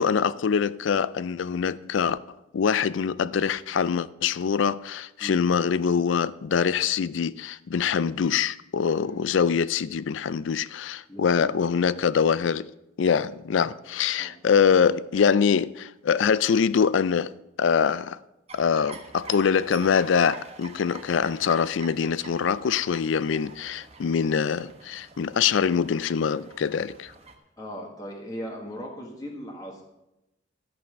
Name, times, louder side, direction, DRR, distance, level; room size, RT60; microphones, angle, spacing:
voice 1, 0.0-2.2 2.5-12.7 13.0-17.3 17.6-18.2 18.5-27.1, left 6 dB, 70° left, 0.4 m, -24 dB
voice 2, 11.1-11.7 13.8-14.4 27.6-29.8, equal, 20° left, 1.5 m, -39 dB
sound 1, 18.5-27.3, right 3 dB, 35° right, 1.3 m, -47 dB
13.5 x 5.4 x 6.7 m
head